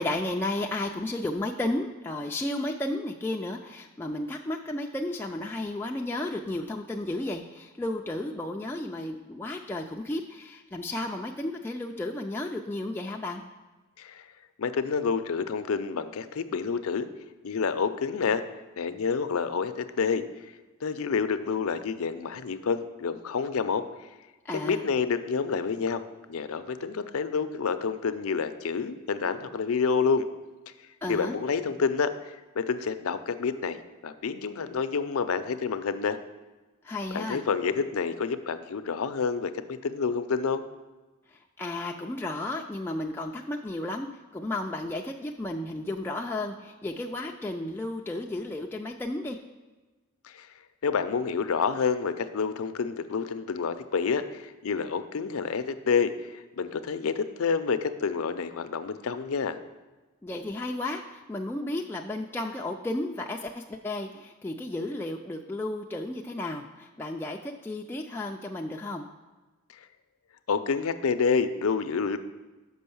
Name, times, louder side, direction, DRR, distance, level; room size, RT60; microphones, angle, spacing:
voice 1, 0.0-13.4 24.4-24.8 31.0-31.3 36.8-37.4 41.3-49.4 60.2-69.1, left 1 dB, 10° left, 0 dB, 0.3 m, -33 dB
voice 2, 14.6-17.1 17.4-18.4 18.8-20.2 20.8-23.8 24.5-26.0 26.3-30.3 31.1-33.8 34.0-36.2 37.1-40.6 50.2-50.5 50.8-59.6 70.5-72.2, left 5 dB, 75° left, 10 dB, 0.5 m, -28 dB
6.2 x 5.4 x 6.9 m, 1.2 s
head